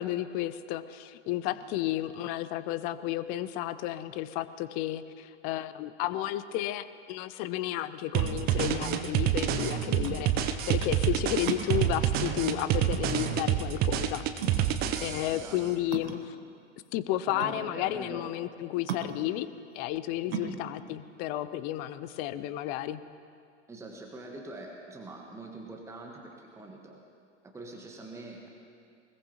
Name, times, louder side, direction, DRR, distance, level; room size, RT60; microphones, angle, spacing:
voice 1, 0.0-14.5 15.0-16.4 16.9-19.5 19.7-23.0, left 13 dB, 25° left, 15 dB, 0.4 m, -32 dB
Object falling on tiles, 8.0-22.4, right 7 dB, 55° right, 1.2 m, -41 dB
sound 1, 8.1-15.5, right 11 dB, 25° right, 0.7 m, -27 dB
voice 2, 9.8-10.2 11.1-11.2 15.3-15.7 17.3-18.3 20.3-20.6 23.7-27.0 27.4-28.5, right 2 dB, 10° right, 1 dB, 1.4 m, -44 dB
21.0 x 20.5 x 3.0 m, 2.3 s
figure-of-eight pair, 90°, 35 cm